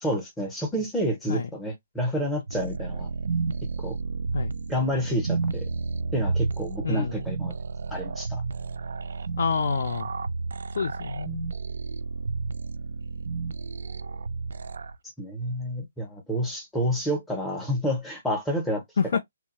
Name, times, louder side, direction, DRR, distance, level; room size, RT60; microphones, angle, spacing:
voice 1, 0.0-3.1 3.8-4.0 4.7-5.7 6.1-7.5 7.9-8.4 15.2-18.8, equal, 5° left, 0.6 m, -29 dB
sound 1, 2.5-15.0, right 4 dB, 55° right, 0.3 m, -31 dB
voice 2, 6.8-7.2 9.4-10.1 10.8-11.5 19.0-19.2, left 5 dB, 45° left, 0.4 m, -27 dB
3.1 x 2.0 x 2.8 m
hypercardioid pair, 175°, 0 cm